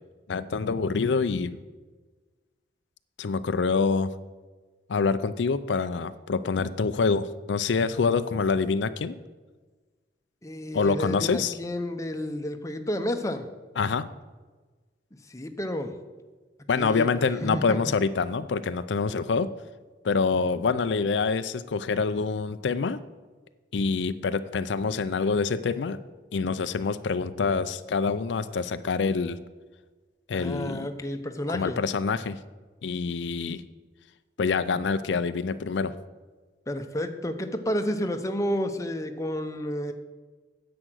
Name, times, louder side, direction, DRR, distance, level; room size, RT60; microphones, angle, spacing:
voice 1, 0.3-1.6 3.2-4.1 4.9-9.2 10.7-11.5 13.8-14.1 16.7-19.5 20.0-23.0 23.7-26.0 26.3-29.4 30.3-30.9 31.5-32.4 32.8-33.6 34.4-35.9, left 4 dB, 85° left, 13 dB, 0.5 m, -26 dB
voice 2, 10.4-13.5 15.3-16.0 16.8-17.1 17.4-17.8 30.3-31.8 36.7-39.9, equal, 20° left, 6 dB, 0.8 m, -31 dB
9.9 x 7.8 x 6.3 m, 1.3 s
head